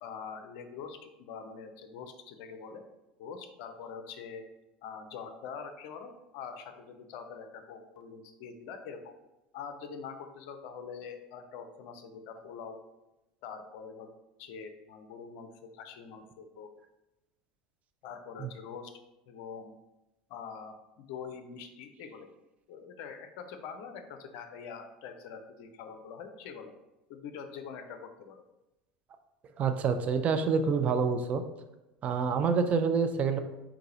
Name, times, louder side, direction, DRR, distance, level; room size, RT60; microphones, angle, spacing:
voice 1, 0.0-2.8 3.2-4.4 4.8-9.1 9.5-12.8 13.4-14.1 14.4-16.7 18.0-18.9 19.3-19.7 20.3-22.3 22.7-26.7 27.1-28.4, left 6 dB, 50° left, 7 dB, 0.5 m, -44 dB
voice 2, 29.6-31.4 32.0-33.4, right 5 dB, 35° right, 8 dB, 0.4 m, -27 dB
4.6 x 3.8 x 3.0 m, 0.97 s
figure-of-eight pair, 70°, 4 cm